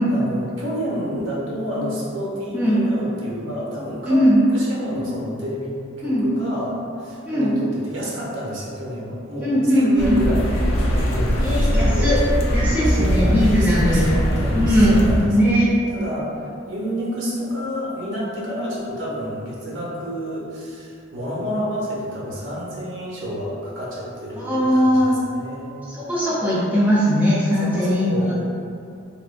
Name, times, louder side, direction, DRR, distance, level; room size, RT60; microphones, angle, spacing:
voice 1, 0.1-5.7 6.0-12.2 12.9-15.3 15.9-25.0 25.3-25.8 27.6-28.3, equal, 70° right, -6 dB, 0.8 m, -29 dB
voice 2, 4.1-4.4 6.0-6.2 7.2-7.5 9.4-10.2 11.4-12.2 12.5-14.1 14.5-15.0 15.2-15.7 24.3-25.2 25.9-28.3, equal, 10° right, -9 dB, 0.6 m, -19 dB
sound 1, 10.0-15.2, equal, 85° left, 0.5 m, -21 dB
3.3 x 2.7 x 2.5 m, 2.4 s
head